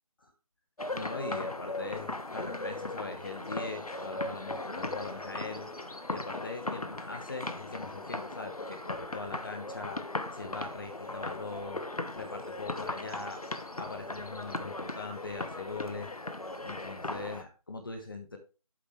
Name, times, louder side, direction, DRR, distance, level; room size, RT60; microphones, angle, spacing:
sound 1, 0.8-17.4, left 2 dB, 80° left, 1.4 m, -38 dB
voice 1, 0.9-5.7 6.1-10.0 10.3-11.8 12.1-13.4 13.8-16.1 16.6-18.4, left 3 dB, 35° left, 5 dB, 1.2 m, -41 dB
8.6 x 7.8 x 3.2 m, 0.32 s
figure-of-eight pair, 165°, 19 cm